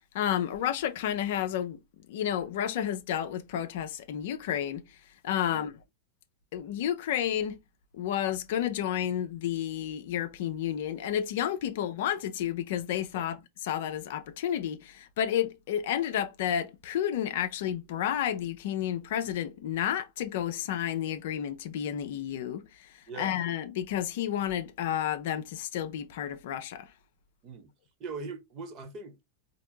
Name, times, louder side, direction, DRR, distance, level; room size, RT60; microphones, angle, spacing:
voice 1, 0.1-1.8 2.1-4.8 5.2-5.7 6.5-7.6 7.9-13.4 13.6-22.9 23.2-26.9, left 10 dB, 55° left, 0.5 m, -31 dB
voice 2, 23.1-23.4 27.4-27.7 28.0-29.2, right 4 dB, 35° right, 1.2 m, -41 dB
4.2 x 2.8 x 2.8 m
figure-of-eight pair, 90°, 0 cm